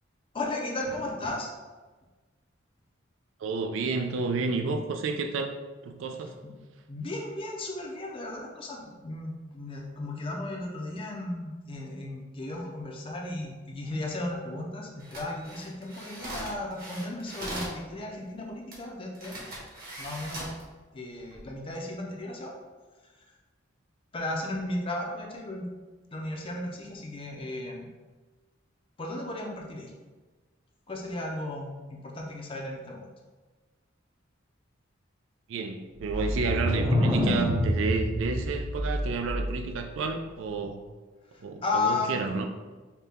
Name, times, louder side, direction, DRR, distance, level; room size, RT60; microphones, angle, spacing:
voice 1, 0.3-1.5 6.9-19.4 20.0-20.5 20.9-22.6 24.1-25.7 26.1-27.9 29.0-29.9 30.9-33.0 41.3-42.2, left 2 dB, 30° left, -1 dB, 0.5 m, -35 dB
voice 2, 3.4-5.5 5.8-6.3 35.5-40.8 41.4-42.5, right 4 dB, 75° right, 5 dB, 0.4 m, -30 dB
sound 1, 15.0-17.8 18.7-18.8 19.1-20.6 21.2-21.4, right 1 dB, 50° right, 1.3 m, -40 dB
sound 2, 36.1-39.8, equal, 15° right, 0.6 m, -27 dB
5.5 x 2.2 x 3.5 m, 1.3 s
head